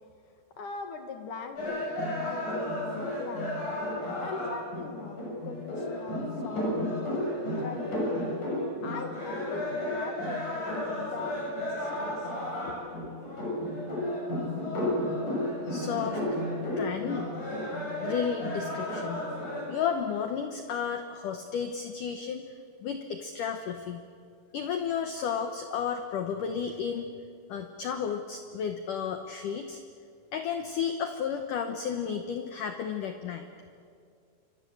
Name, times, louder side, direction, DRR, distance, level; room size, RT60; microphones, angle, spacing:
voice 1, 0.6-6.9 7.6-8.0 8.8-12.3 12.7-13.1, left 4 dB, 60° left, 6 dB, 2.5 m, -41 dB
sound 1, 1.6-19.7, left 1 dB, 40° left, 8.4 m, -32 dB
voice 2, 15.7-16.4 16.8-17.3 18.0-19.3 19.7-22.4 22.8-24.0 24.5-27.1 27.5-29.8 30.3-33.5, left 7 dB, 85° left, 7 dB, 1.8 m, -32 dB
28.5 x 25.0 x 7.9 m, 2.4 s
omnidirectional pair, 5.4 m